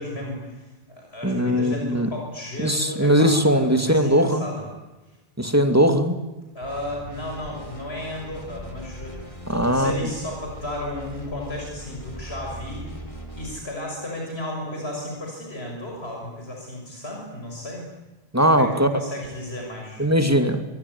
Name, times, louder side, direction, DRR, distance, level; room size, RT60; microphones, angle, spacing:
voice 1, 0.0-4.7 6.5-12.9 13.3-17.9 18.5-20.1, left 1 dB, 85° left, 0 dB, 6.5 m, -34 dB
voice 2, 1.2-2.1 2.6-4.4 5.4-6.2 9.5-10.0 18.3-18.9 20.0-20.7, equal, 15° right, 7 dB, 2.4 m, -19 dB
sound 1, 6.6-13.7, equal, 30° left, 4.7 m, -39 dB
26.5 x 22.5 x 9.6 m, 1.1 s
omnidirectional pair, 1.0 m